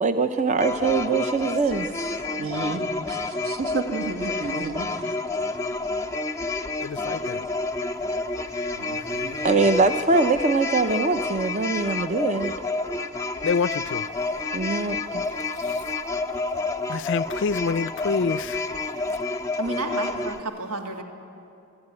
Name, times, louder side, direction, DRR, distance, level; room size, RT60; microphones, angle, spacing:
voice 1, 0.0-1.9 9.4-12.5 14.5-15.2, right 3 dB, 35° right, 0.5 m, -22 dB
sound 1, 0.6-20.4, left 3 dB, 15° left, 0.6 m, -29 dB
voice 2, 1.7-2.5 19.6-21.0, right 2 dB, 90° right, 2.3 m, -33 dB
voice 3, 2.4-5.1 8.8-9.4, right 3 dB, 65° right, 1.6 m, -32 dB
voice 4, 6.8-7.5 13.4-14.1 15.6-15.8 16.9-18.6, left 5 dB, 55° left, 0.4 m, -27 dB
24.0 x 12.5 x 9.7 m
head